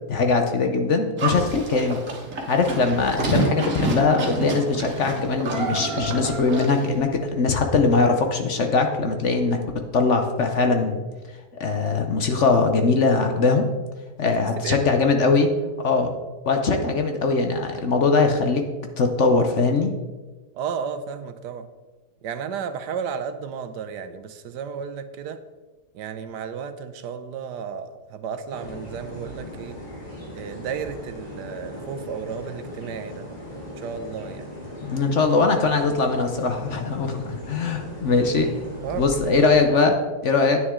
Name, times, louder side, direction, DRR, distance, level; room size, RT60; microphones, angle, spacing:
voice 1, 0.1-2.0 2.5-9.6 9.9-11.0 11.6-13.6 14.2-15.5 15.8-16.1 16.5-18.6 19.0-19.9 34.8-38.5 38.9-40.0 40.2-40.6, left 4 dB, 55° left, 5 dB, 1.0 m, -21 dB
Livestock farm animals working animals, 1.2-6.9, right 2 dB, 50° right, 1.8 m, -28 dB
voice 2, 14.2-14.9 20.5-21.7 22.2-25.4 25.9-29.8 30.4-33.3 33.8-34.5 38.8-39.5, right 7 dB, 80° right, 11 dB, 1.3 m, -33 dB
sound 1, 28.5-39.6, equal, 25° left, 3.0 m, -38 dB
9.6 x 9.5 x 3.7 m, 1.3 s
omnidirectional pair, 1.8 m